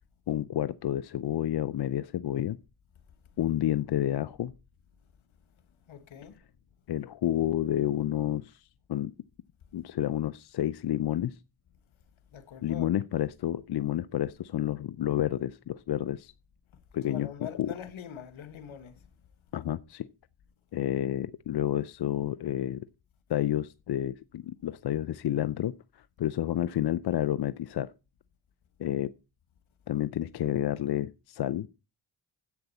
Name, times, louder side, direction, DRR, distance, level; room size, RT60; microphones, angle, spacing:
voice 1, 0.3-2.6 3.4-4.5 6.9-8.6 8.9-9.1 9.7-11.3 12.6-16.3 16.9-17.7 19.5-20.1 20.7-22.9 23.3-27.9 28.8-29.1 29.9-31.7, left 12 dB, 55° left, 0.6 m, -30 dB
voice 2, 5.9-6.4 12.3-12.9 13.2-13.3 17.0-19.1, left 8 dB, 75° left, 1.5 m, -43 dB
10.5 x 8.1 x 4.2 m
supercardioid pair, 50°, 49 cm